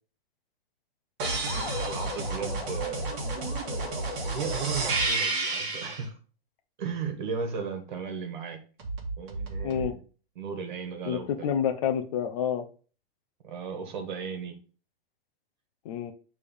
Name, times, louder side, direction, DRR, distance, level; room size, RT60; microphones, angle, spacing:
sound 1, 1.2-6.0 8.8-9.9, right 3 dB, 25° right, 1.6 m, -31 dB
voice 1, 1.4-3.1 4.2-6.1 6.8-8.6 9.2-10.0 10.3-11.5 13.4-14.5, right 6 dB, 50° right, 5 dB, 1.6 m, -35 dB
sound 2, 1.5-5.3, left 6 dB, 70° left, 1.2 m, -40 dB
voice 2, 9.6-9.9 11.1-12.7 15.8-16.1, left 8 dB, 35° left, 7 dB, 0.7 m, -28 dB
6.6 x 3.5 x 5.2 m, 0.37 s
hypercardioid pair, 170°, 30 cm